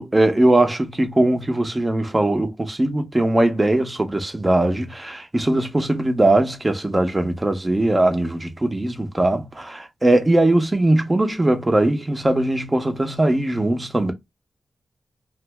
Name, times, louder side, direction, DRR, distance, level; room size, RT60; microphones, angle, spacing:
voice 1, 0.0-14.1, right 1 dB, 25° right, 0.8 m, -20 dB
2.6 x 2.1 x 3.3 m
cardioid pair, 60°, 0 cm